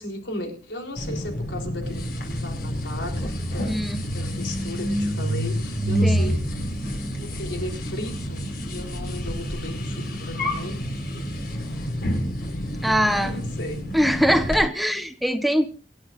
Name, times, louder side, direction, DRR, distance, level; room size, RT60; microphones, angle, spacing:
voice 1, 0.0-3.8 4.1-6.4 7.2-10.8 13.0-13.8, left 1 dB, 85° left, 2 dB, 4.2 m, -36 dB
sound 1, 1.0-14.6, equal, 55° left, 6.1 m, -28 dB
voice 2, 3.6-4.0 6.0-6.4 12.8-13.3 13.9-15.7, equal, ahead, 6 dB, 1.2 m, -22 dB
28.0 x 11.0 x 2.6 m, 0.37 s
head